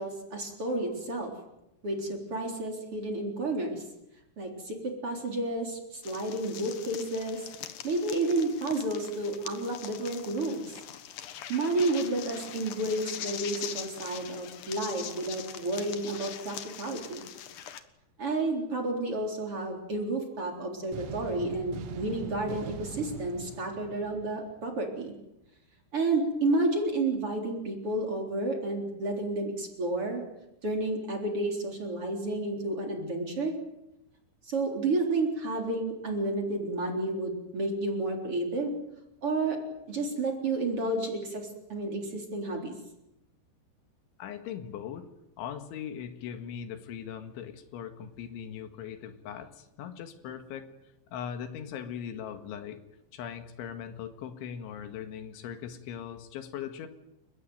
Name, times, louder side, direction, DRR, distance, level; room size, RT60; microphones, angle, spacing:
voice 1, 0.0-1.3 1.8-3.8 4.4-7.5 7.8-10.7 11.5-17.2 18.2-25.1 25.9-30.2 30.6-33.5 34.5-38.7 39.2-39.6 39.9-42.7, right 2 dB, 30° right, 2 dB, 4.3 m, -31 dB
sound 1, 6.0-17.8, left 10 dB, 65° left, 2.1 m, -42 dB
sound 2, 20.9-24.9, right 9 dB, 80° right, 4.1 m, -42 dB
voice 2, 44.2-45.1 45.4-50.7 51.1-52.8 53.1-56.9, left 8 dB, 85° left, 8 dB, 4.1 m, -40 dB
30.0 x 15.5 x 9.3 m, 0.91 s
omnidirectional pair, 5.3 m